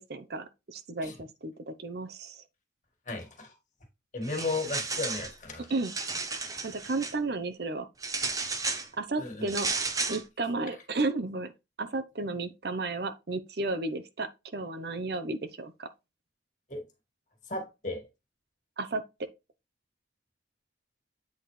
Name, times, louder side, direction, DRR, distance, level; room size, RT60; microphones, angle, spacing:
voice 1, 0.0-2.4 5.7-5.9 6.6-7.9 9.0-9.7 10.1-11.5 11.8-15.9 18.8-19.0, right 3 dB, 60° right, 0.7 m, -33 dB
voice 2, 3.1-3.5 4.1-5.7 9.2-9.5 16.7-16.8 17.5-18.0, left 3 dB, 40° left, 1.8 m, -34 dB
sound 1, 4.2-5.3 5.7-7.1 8.0-8.9 9.5-10.2, right 4 dB, 20° right, 0.6 m, -33 dB
8.1 x 4.2 x 3.2 m
head